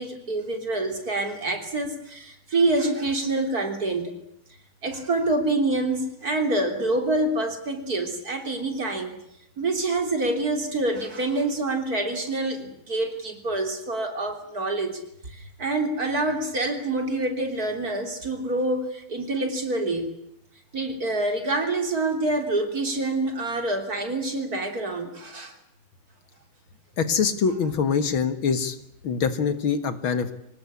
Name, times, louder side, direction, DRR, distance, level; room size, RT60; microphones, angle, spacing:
voice 1, 0.0-4.1 4.8-9.2 9.6-15.0 15.3-20.1 20.7-25.5, right 2 dB, 45° right, 5 dB, 3.9 m, -26 dB
voice 2, 27.0-28.8 29.0-30.3, left 6 dB, 75° left, 11 dB, 2.5 m, -24 dB
24.5 x 19.5 x 9.7 m, 0.78 s
omnidirectional pair, 2.3 m